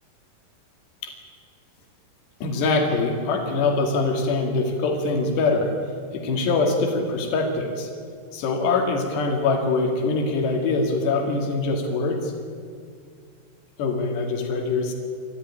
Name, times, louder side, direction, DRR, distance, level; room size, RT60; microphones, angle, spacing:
voice 1, 2.4-5.7 6.1-7.9 8.3-12.3 13.8-14.9, left 3 dB, 85° left, 3 dB, 4.6 m, -23 dB
29.0 x 13.5 x 9.9 m, 2.2 s
omnidirectional pair, 4.7 m